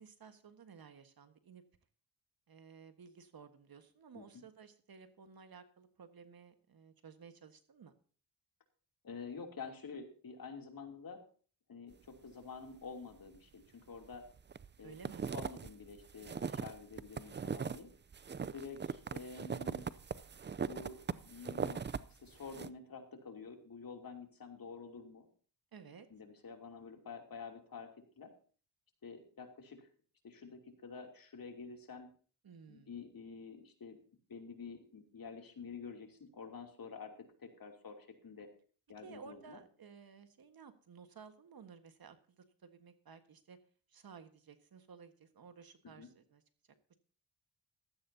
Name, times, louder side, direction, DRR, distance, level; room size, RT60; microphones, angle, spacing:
voice 1, 0.0-1.6 2.5-7.9 14.8-15.2 25.7-26.1 32.4-32.9 39.0-43.6 43.9-46.4, right 6 dB, 55° right, 8 dB, 1.6 m, -55 dB
voice 2, 9.0-11.2 11.7-14.2 14.8-14.9 15.3-17.9 18.5-19.8 20.6-21.8 22.1-25.3 26.1-27.9 28.2-28.3 29.0-29.9 30.2-32.1 32.7-34.0 34.3-38.5 38.9-39.6 45.8-46.1, left 5 dB, 50° left, 3 dB, 3.0 m, -49 dB
sound 1, 14.0-14.7 14.9-17.8 18.1-22.0 22.3-22.7, right 6 dB, 25° right, 0.5 m, -40 dB
16.0 x 13.5 x 2.8 m, 0.42 s
cardioid pair, 65°, 44 cm